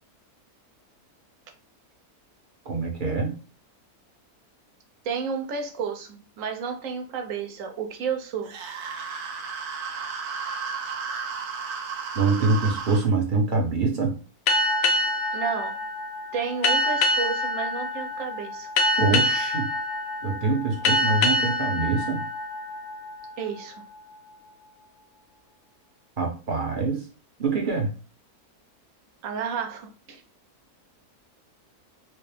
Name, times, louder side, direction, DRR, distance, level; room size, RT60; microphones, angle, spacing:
voice 1, 2.6-3.3 12.1-14.2 19.0-19.7 20.2-22.2 26.2-27.0 27.4-27.9, right 3 dB, 40° right, 0.9 m, -24 dB
voice 2, 5.0-8.5 15.3-15.8 16.3-18.7 23.4-23.8 29.2-30.2, right 6 dB, 65° right, 1.1 m, -31 dB
sound 1, 8.5-13.1, right 5 dB, 85° right, 1.2 m, -33 dB
sound 2, 14.5-23.6, left 1 dB, 70° left, 1.0 m, -26 dB
4.6 x 2.0 x 3.3 m
omnidirectional pair, 1.6 m